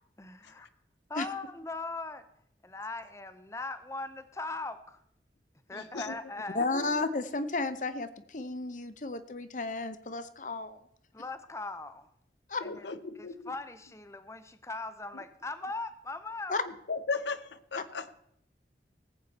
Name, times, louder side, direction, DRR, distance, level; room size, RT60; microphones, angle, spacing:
voice 1, 0.2-0.7 1.1-2.3 2.6-5.0 5.7-6.6 11.1-12.1 12.6-12.8 13.2-16.5, left 3 dB, 15° left, 11 dB, 0.7 m, -39 dB
voice 2, 5.7-6.2 6.7-6.8 12.6-13.5 16.9-18.1, left 4 dB, 85° left, 12 dB, 0.8 m, -36 dB
voice 3, 6.5-10.8 12.5-12.6 16.5-16.6 17.8-17.9, left 3 dB, 45° left, 11 dB, 0.8 m, -33 dB
19.0 x 8.3 x 4.2 m, 0.73 s
head